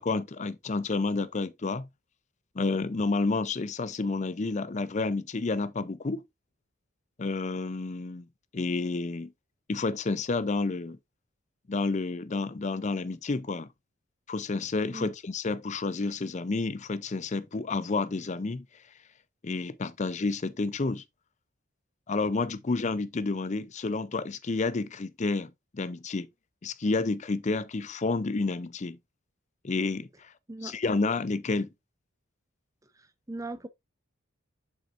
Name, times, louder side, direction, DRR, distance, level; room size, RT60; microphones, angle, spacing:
voice 1, 0.0-1.9 2.6-6.2 7.2-8.3 8.5-9.3 9.7-11.0 11.7-13.7 14.3-18.6 19.4-21.0 22.1-26.3 26.6-29.0 29.6-30.3 30.6-31.7, left 3 dB, 35° left, 0.5 m, -30 dB
voice 2, 33.0-33.7, right 2 dB, 15° right, 0.5 m, -39 dB
7.3 x 5.7 x 2.5 m
head